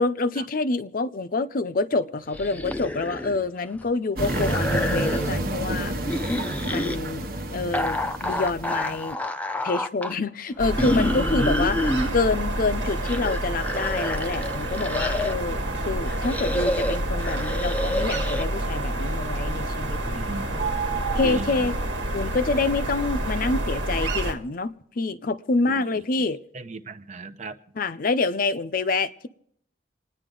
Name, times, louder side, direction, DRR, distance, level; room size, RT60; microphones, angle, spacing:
voice 1, 0.0-5.9 6.6-7.2 7.5-9.2 9.6-11.8 12.1-20.6 21.1-21.7 22.1-26.4 27.8-29.3, left 3 dB, 50° left, 0.6 m, -27 dB
sound 1, 2.3-3.5 3.7-5.4 6.0-7.0 7.7-10.1 10.8-12.1 12.7-15.5 16.1-18.5, left 1 dB, 10° left, 0.5 m, -28 dB
sound 2, 4.1-9.1, right 1 dB, 55° right, 1.2 m, -29 dB
sound 3, 10.6-24.3, right 1 dB, 85° right, 1.9 m, -28 dB
voice 2, 20.0-20.5 21.2-21.7 25.7-25.8 26.5-27.6, right 3 dB, 40° right, 0.7 m, -35 dB
28.5 x 9.9 x 3.8 m
head